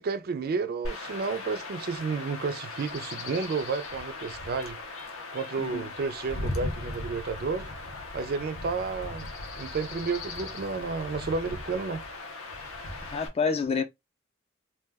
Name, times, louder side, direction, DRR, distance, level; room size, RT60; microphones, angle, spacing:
voice 1, 0.0-4.8 5.3-7.7 8.1-9.3 9.6-12.0, right 4 dB, 50° right, 0.4 m, -31 dB
Chirp tweet / Wind / Stream, 0.8-13.3, left 2 dB, 90° left, 0.6 m, -38 dB
voice 2, 13.1-13.8, left 5 dB, 30° left, 0.3 m, -28 dB
2.2 x 2.2 x 3.3 m
head